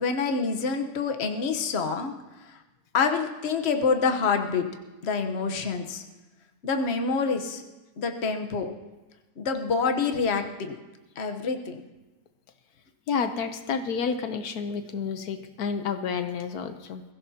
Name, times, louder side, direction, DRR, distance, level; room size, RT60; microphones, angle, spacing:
voice 1, 0.0-2.1 2.9-4.6 5.0-6.0 6.6-7.6 8.0-8.7 9.4-10.8 11.2-11.8, left 5 dB, 45° left, 5 dB, 1.2 m, -26 dB
voice 2, 13.1-17.0, left 6 dB, 80° left, 8 dB, 1.3 m, -30 dB
22.0 x 16.0 x 2.8 m, 1.1 s
omnidirectional pair, 1.6 m